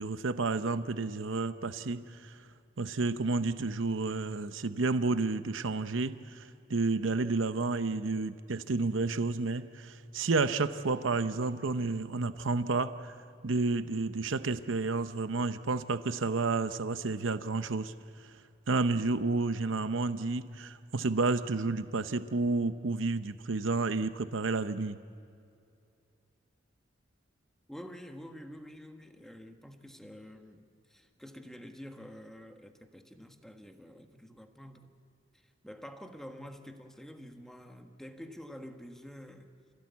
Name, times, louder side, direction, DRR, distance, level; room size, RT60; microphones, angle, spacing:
voice 1, 0.0-2.5 2.8-13.1 13.4-17.9 18.2-18.3 18.7-25.0, right 3 dB, 80° right, 11 dB, 0.8 m, -31 dB
voice 2, 27.7-34.9 35.6-39.5, equal, ahead, 5 dB, 1.5 m, -48 dB
28.0 x 16.5 x 8.4 m, 2.5 s
head